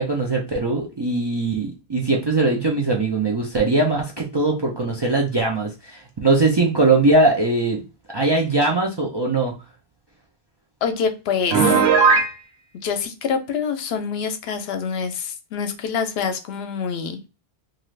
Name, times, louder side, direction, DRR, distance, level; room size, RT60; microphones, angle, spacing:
voice 1, 0.0-7.8 8.1-9.5, right 2 dB, 40° right, -1 dB, 0.4 m, -20 dB
voice 2, 10.8-11.8 12.8-17.2, left 6 dB, 80° left, 8 dB, 0.8 m, -26 dB
Piano, 11.5-12.3, right 5 dB, 80° right, 0.9 m, -16 dB
2.6 x 2.4 x 3.1 m, 0.29 s
omnidirectional pair, 1.0 m